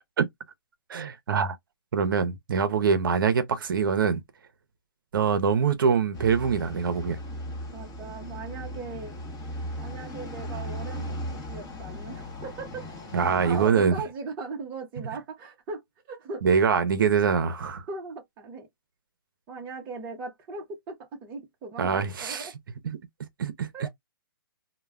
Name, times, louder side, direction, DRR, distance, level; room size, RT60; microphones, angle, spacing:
voice 1, 0.9-1.6 1.9-4.2 5.1-7.2 13.1-14.0 16.4-17.8 21.8-22.5 22.8-23.0 23.4-23.7, right 6 dB, 65° right, 0.5 m, -24 dB
sound 1, 6.1-13.7, equal, 20° left, 0.8 m, -37 dB
voice 2, 7.7-9.1 9.8-12.9 13.2-15.8 16.1-16.4 17.9-18.7 19.5-22.5 23.7-23.9, right 4 dB, 15° right, 0.5 m, -38 dB
2.1 x 2.1 x 3.4 m
hypercardioid pair, 160°, 12 cm